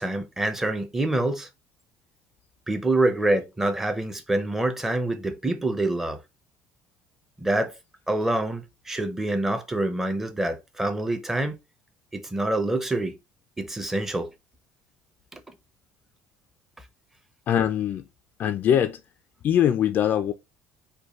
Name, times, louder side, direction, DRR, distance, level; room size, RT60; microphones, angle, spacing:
voice 1, 0.0-1.5 2.7-6.2 7.4-7.7 8.1-11.6 12.1-13.2 13.6-14.3 15.3-15.4, right 2 dB, 10° right, 0.7 m, -26 dB
voice 2, 17.5-18.1 18.4-19.0 19.4-20.3, left 10 dB, 40° left, 0.4 m, -22 dB
5.3 x 2.2 x 4.2 m
cardioid pair, 160°, 5 cm